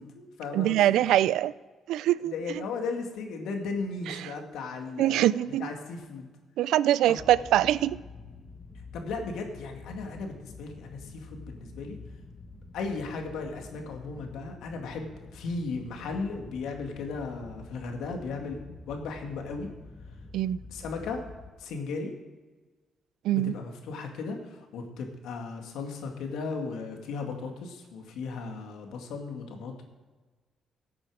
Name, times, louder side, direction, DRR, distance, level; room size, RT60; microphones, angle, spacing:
voice 1, 0.0-1.0 2.2-5.2 5.5-6.3 7.1-7.2 8.9-12.0 12.7-18.6 18.9-19.7 20.7-21.2 21.6-22.1 23.3-29.8, left 4 dB, 85° left, 3 dB, 2.2 m, -36 dB
voice 2, 0.5-1.5 1.9-2.6 4.2-4.3 5.0-5.7 6.6-8.0 20.3-20.6 23.2-23.5, right 13 dB, 85° right, 18 dB, 0.4 m, -24 dB
sound 1, 7.2-21.5, left 3 dB, 25° left, 1.7 m, -47 dB
16.0 x 8.7 x 5.0 m, 1.3 s
cardioid pair, 90°, 0 cm